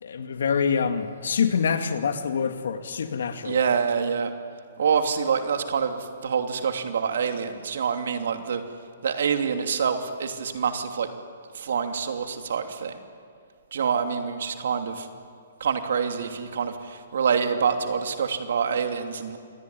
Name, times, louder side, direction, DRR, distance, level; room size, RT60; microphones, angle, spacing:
voice 1, 0.0-3.6, left 6 dB, 75° left, 7 dB, 2.3 m, -26 dB
voice 2, 3.4-4.3 4.8-8.6 9.0-11.1 11.5-13.0 13.7-15.1 15.6-19.4, right 6 dB, 70° right, 6 dB, 2.9 m, -26 dB
27.0 x 21.0 x 9.8 m, 2.2 s
hypercardioid pair, 140°, 0 cm